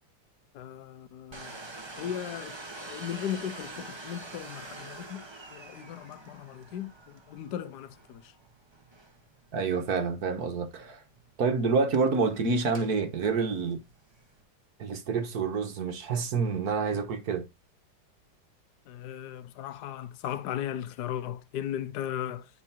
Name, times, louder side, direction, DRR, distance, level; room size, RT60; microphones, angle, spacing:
voice 1, 0.5-1.5 2.0-5.2 5.5-8.3 18.9-22.5, left 10 dB, 65° left, 1.3 m, -37 dB
Domestic sounds home sounds, 1.3-14.4, right 2 dB, 25° right, 0.6 m, -47 dB
voice 2, 9.5-11.0 11.4-13.8 14.8-17.5, right 4 dB, 55° right, 1.4 m, -28 dB
9.5 x 5.5 x 2.7 m
omnidirectional pair, 2.2 m